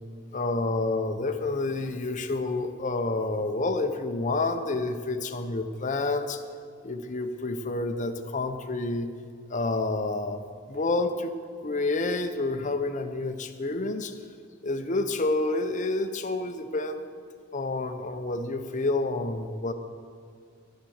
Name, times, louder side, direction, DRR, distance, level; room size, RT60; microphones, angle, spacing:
voice 1, 0.3-6.4 6.8-9.1 9.5-10.4 10.7-11.3 11.6-14.2 14.6-17.1 17.5-19.7, left 2 dB, 35° left, 7 dB, 0.8 m, -29 dB
11.5 x 10.5 x 6.5 m, 2.2 s
head